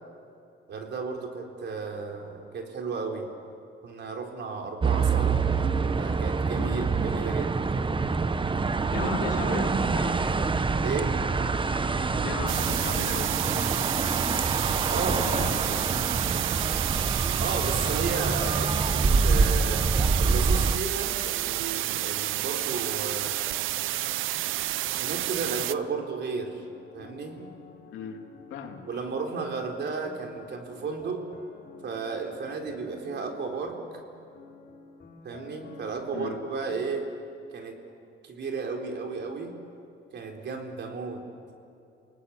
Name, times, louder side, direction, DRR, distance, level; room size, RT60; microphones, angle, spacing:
voice 1, 0.7-3.3 3.8-5.4 6.0-7.7 9.0-9.1 9.5-9.6 10.8-11.2 14.9-15.3 17.4-19.9 20.2-23.5 25.0-26.6 26.9-27.4 28.9-31.3 31.8-33.8 35.2-37.1 37.5-37.8 38.2-39.6 40.1-41.2, right 4 dB, 60° right, 2 dB, 4.1 m, -33 dB
sound 1, 4.8-20.8, right 4 dB, 25° right, 1.0 m, -26 dB
voice 2, 8.9-10.2 12.2-13.8 15.2-15.9 27.9-28.2 28.5-28.8 36.1-36.4, left 6 dB, 85° left, 3 dB, 2.8 m, -36 dB
sound 2, 12.5-25.7, right 15 dB, 85° right, 0.6 m, -30 dB
sound 3, 26.4-36.8, left 3 dB, 50° left, 5.6 m, -50 dB
29.5 x 18.5 x 8.7 m, 2.6 s
cardioid pair, 90°, 20 cm